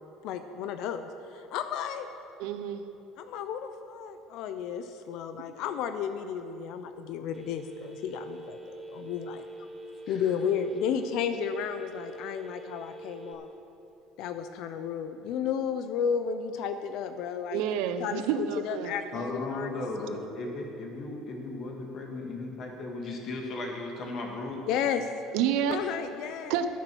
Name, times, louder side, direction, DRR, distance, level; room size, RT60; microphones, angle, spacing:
voice 1, 0.2-2.1 3.2-8.6 8.9-9.4 10.1-13.5 14.2-17.6 18.0-20.1 24.7-25.1 25.7-26.6, left 7 dB, 65° left, 9 dB, 0.6 m, -33 dB
voice 2, 2.4-2.8 17.5-18.9 25.3-25.8 26.5-26.7, right 9 dB, 75° right, 9 dB, 0.7 m, -29 dB
Telephone, 7.3-13.3, right 2 dB, 20° right, 1.3 m, -45 dB
voice 3, 19.1-24.6, left 2 dB, 45° left, 1 dB, 2.1 m, -36 dB
10.5 x 9.3 x 6.2 m, 3.0 s
supercardioid pair, 115°, 0 cm